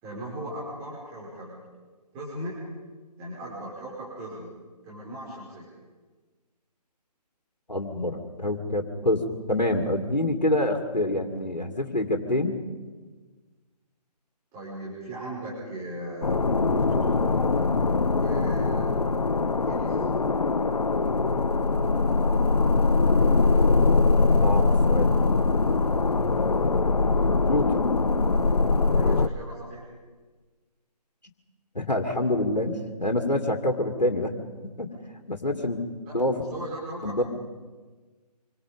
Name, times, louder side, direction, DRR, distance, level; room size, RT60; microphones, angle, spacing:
voice 1, 0.0-1.6 2.1-2.6 3.2-4.5 4.8-5.7 14.5-17.1 18.0-19.1 19.7-20.0 28.9-29.9 36.0-37.2, right 1 dB, 15° right, -6 dB, 5.6 m, -38 dB
voice 2, 7.7-12.6 24.4-25.3 27.2-27.8 31.7-34.3 34.8-34.9 35.3-35.8 36.1-36.4 37.0-37.2, left 1 dB, 85° left, 4 dB, 2.6 m, -26 dB
sound 1, 16.2-29.3, left 3 dB, 65° left, 1.1 m, -22 dB
27.0 x 24.5 x 5.3 m, 1.3 s
figure-of-eight pair, 145°, 21 cm